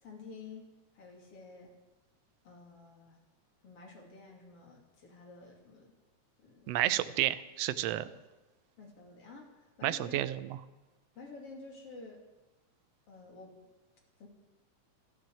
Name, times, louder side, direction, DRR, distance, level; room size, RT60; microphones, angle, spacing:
voice 1, 0.0-0.7 1.0-1.7 2.4-3.2 3.6-5.9 6.4-7.1 8.0-8.1 8.8-10.2 11.2-12.2 13.1-13.6 14.2-14.3, left 3 dB, 50° left, 0 dB, 3.7 m, -50 dB
voice 2, 6.7-8.0 9.8-10.6, right 14 dB, 75° right, 13 dB, 1.6 m, -31 dB
13.5 x 12.5 x 7.7 m, 1.1 s
omnidirectional pair, 3.4 m